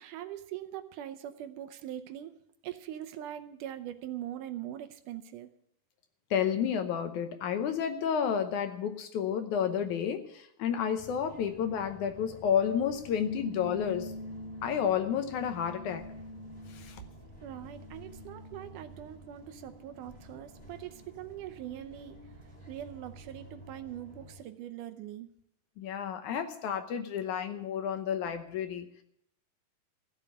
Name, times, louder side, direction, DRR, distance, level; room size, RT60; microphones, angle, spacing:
voice 1, 0.0-2.3 2.6-5.5 17.4-22.2 22.7-25.3, right 11 dB, 75° right, 9 dB, 2.1 m, -42 dB
voice 2, 6.3-14.1 14.6-16.1 16.7-17.0 25.8-28.9, left 8 dB, 70° left, 8 dB, 2.2 m, -31 dB
sound 1, 11.0-24.4, equal, ahead, 3.2 m, -52 dB
sound 2, 13.2-19.2 19.7-21.0, left 1 dB, 90° left, 4.2 m, -46 dB
15.0 x 7.4 x 8.4 m, 0.71 s
omnidirectional pair, 3.9 m